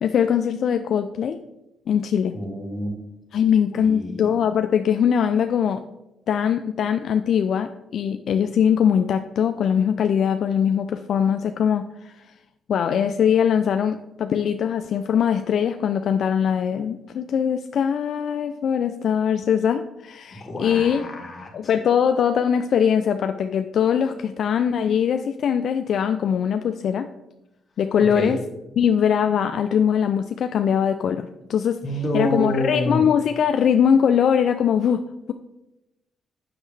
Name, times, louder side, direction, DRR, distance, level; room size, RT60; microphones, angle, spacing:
voice 1, 0.0-1.4 1.9-2.4 3.3-5.8 6.3-12.2 12.7-21.0 21.5-27.1 27.8-28.4 28.8-31.8 32.1-35.0, left 8 dB, 65° left, 8 dB, 0.3 m, -21 dB
voice 2, 2.3-2.9 3.7-4.2 20.4-21.7 28.0-28.4 31.8-33.0, left 1 dB, 30° left, 1 dB, 1.8 m, -28 dB
7.6 x 6.3 x 3.2 m, 0.94 s
cardioid pair, 90°, 0 cm